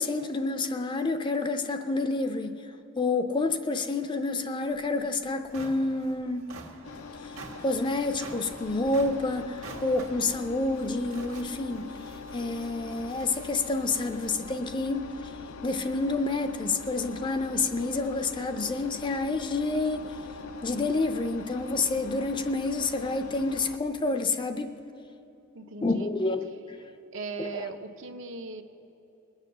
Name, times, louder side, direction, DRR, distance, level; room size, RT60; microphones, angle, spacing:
voice 1, 0.0-2.6 3.0-6.5 7.6-11.9 12.3-15.1 15.6-20.0 20.6-24.7 25.8-26.5 27.4-27.7, left 3 dB, 20° left, 8 dB, 0.5 m, -28 dB
sound 1, 4.8-4.9 5.3-14.5, right 3 dB, 80° right, 1.5 m, -48 dB
Engine, 6.8-23.8, left 4 dB, 85° left, 0.5 m, -42 dB
voice 2, 25.5-26.1 27.1-28.6, right 3 dB, 60° right, 7 dB, 0.7 m, -38 dB
20.5 x 7.3 x 6.6 m, 3.0 s
head